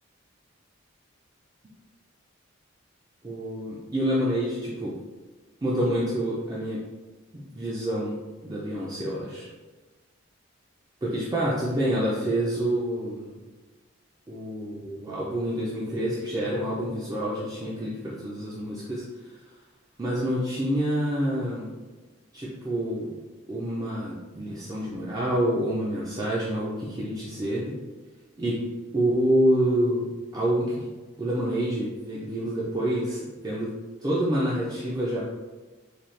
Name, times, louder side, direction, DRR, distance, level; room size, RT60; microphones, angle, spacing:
voice 1, 3.2-4.9 5.6-6.8 7.5-8.2 8.4-9.5 11.0-13.3 14.3-19.0 20.0-21.7 22.3-23.1 23.5-27.6 28.4-28.6 28.9-30.9 31.2-33.7 34.0-35.3, right 1 dB, 20° right, -6 dB, 0.4 m, -27 dB
4.1 x 2.3 x 3.1 m, 1.3 s
head